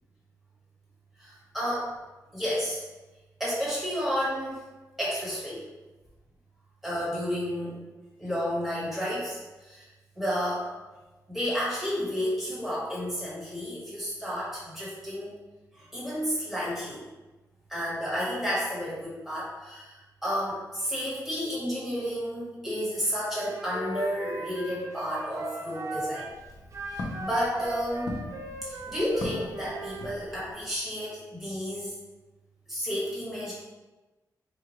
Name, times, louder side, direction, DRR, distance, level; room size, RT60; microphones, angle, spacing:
voice 1, 1.2-1.9 2.3-2.8 3.4-4.6 5.0-5.6 6.8-7.7 8.2-9.9 10.2-10.7 11.3-15.4 15.8-17.0 17.7-26.3 26.9-28.2 28.6-31.9 32.7-33.5, equal, 5° right, -8 dB, 1.3 m, -31 dB
Wind instrument woodwind instrument, 23.3-26.3 26.7-30.1, right 1 dB, 45° right, 0.5 m, -37 dB
Walk footsteps, 26.2-30.7, left 2 dB, 65° left, 0.6 m, -40 dB
4.4 x 2.4 x 3.0 m, 1.2 s
wide cardioid pair, 170°, 7 cm